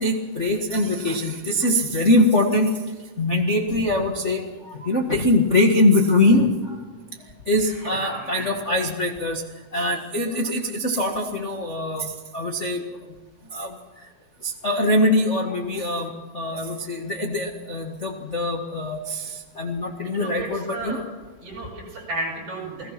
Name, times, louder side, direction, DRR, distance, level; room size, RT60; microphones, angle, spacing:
voice 1, 0.0-2.7 3.2-6.5 7.5-9.4 9.7-12.8 13.5-13.7 14.6-16.1 16.3-19.2 19.6-21.0, left 1 dB, 30° left, 3 dB, 1.4 m, -22 dB
voice 2, 7.6-8.5 20.1-21.0 21.4-22.9, right 2 dB, 55° right, 0 dB, 8.6 m, -33 dB
29.0 x 19.0 x 6.0 m, 1.3 s
omnidirectional pair, 3.9 m